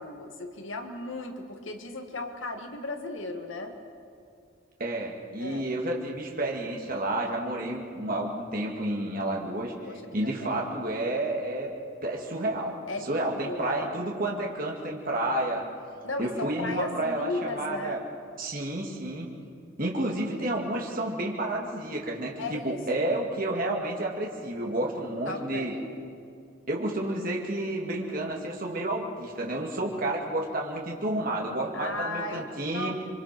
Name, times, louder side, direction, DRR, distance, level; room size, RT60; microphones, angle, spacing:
voice 1, 0.0-3.7 5.4-5.7 9.9-10.7 12.9-13.9 16.0-18.1 22.4-23.0 25.3-25.9 31.7-32.5 32.7-32.9, left 2 dB, 65° left, 5 dB, 1.9 m, -36 dB
voice 2, 4.8-9.7 10.1-11.7 12.0-12.8 13.1-15.7 16.2-18.0 18.4-19.3 19.8-25.7 26.7-32.9, right 1 dB, 40° right, -1 dB, 2.4 m, -30 dB
26.5 x 24.0 x 6.2 m, 2.4 s
head